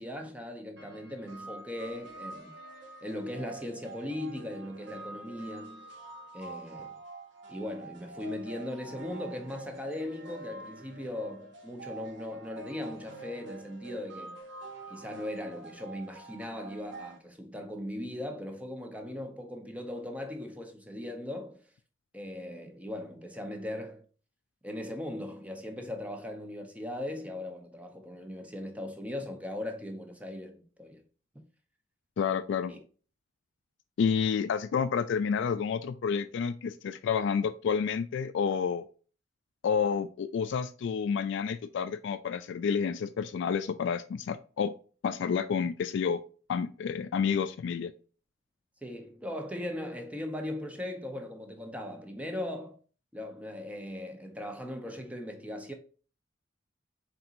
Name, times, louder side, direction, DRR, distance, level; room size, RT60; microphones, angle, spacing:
voice 1, 0.0-2.5 3.0-5.9 6.3-7.0 7.5-14.4 14.9-21.6 22.1-24.0 24.6-31.0 31.3-31.4 32.7-32.8 48.8-52.8 53.1-55.7, left 1 dB, 10° right, 0.8 m, -39 dB
sound 1, 0.8-17.2, right 3 dB, 70° right, 1.0 m, -46 dB
voice 2, 32.2-32.7 34.0-38.9 39.6-44.7 45.0-46.2 46.5-47.9, left 6 dB, 65° left, 0.3 m, -29 dB
4.4 x 3.9 x 2.5 m
head